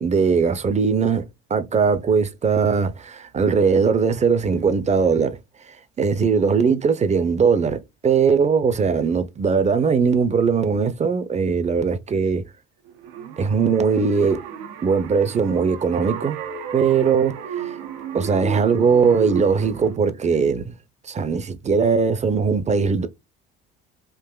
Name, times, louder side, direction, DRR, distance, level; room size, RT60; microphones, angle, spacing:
voice 1, 0.0-5.4 6.0-12.4 13.4-14.4 14.8-16.4 16.7-17.7 18.1-20.7 21.0-23.1, right 5 dB, 25° right, 0.6 m, -20 dB
sound 1, 12.8-20.0, right 9 dB, 85° right, 0.7 m, -34 dB
3.8 x 2.5 x 2.2 m
hypercardioid pair, 75°, 29 cm